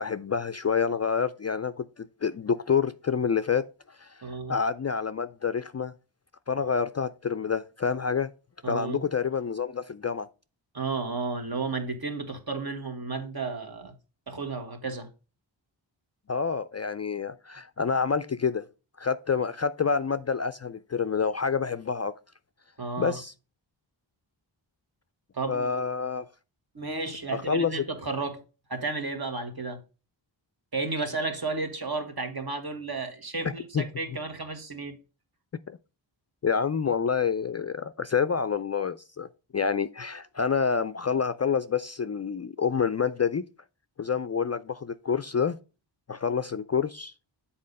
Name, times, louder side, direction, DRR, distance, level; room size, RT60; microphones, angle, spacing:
voice 1, 0.0-4.2 4.5-5.9 6.5-8.3 8.7-10.3 16.3-18.7 19.0-22.1 23.0-23.3 25.5-26.3 27.3-27.8 33.7-33.8 36.4-43.5 44.0-45.6 46.1-47.1, left 6 dB, 35° left, 0.4 m, -28 dB
voice 2, 4.2-4.6 8.6-9.0 10.7-13.9 14.3-15.1 22.8-23.2 25.3-25.7 26.7-28.4 28.7-29.8 30.7-35.0, right 3 dB, 50° right, 1.7 m, -32 dB
7.6 x 4.3 x 5.3 m
cardioid pair, 50°, 47 cm